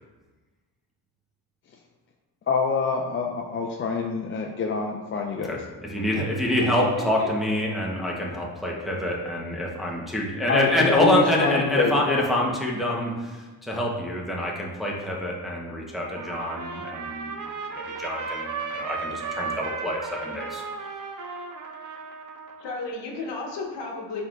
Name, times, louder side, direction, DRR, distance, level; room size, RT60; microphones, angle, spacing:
voice 1, 2.5-5.6 10.5-12.2, left 5 dB, 30° left, 1 dB, 0.3 m, -26 dB
voice 2, 5.4-17.3 17.7-20.6, left 1 dB, ahead, -3 dB, 0.9 m, -26 dB
voice 3, 6.6-7.3 22.6-24.2, left 3 dB, 65° left, -1 dB, 1.0 m, -33 dB
Trumpet, 16.0-22.8, right 5 dB, 45° right, 0.6 m, -35 dB
4.2 x 3.7 x 2.4 m, 1.3 s
supercardioid pair, 70°, 45 cm